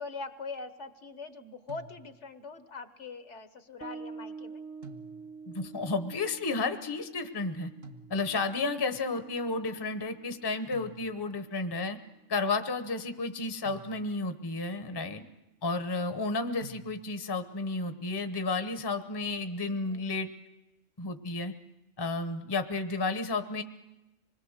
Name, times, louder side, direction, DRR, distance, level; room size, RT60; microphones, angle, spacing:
voice 1, 0.0-4.6 14.9-15.3 19.7-20.0, left 4 dB, 65° left, 9 dB, 1.4 m, -43 dB
sound 1, 1.7-2.4 4.8-5.6 7.8-8.6 10.7-11.5 13.6-14.4 16.6-17.4, right 2 dB, 50° right, 1.7 m, -51 dB
Bass guitar, 3.8-11.0, right 4 dB, 5° right, 0.8 m, -48 dB
voice 2, 5.5-7.7 8.1-12.0 12.3-15.2 15.6-20.3 21.0-21.5 22.0-23.6, left 3 dB, 20° left, 8 dB, 0.8 m, -32 dB
26.0 x 20.5 x 6.5 m, 0.97 s
omnidirectional pair, 1.3 m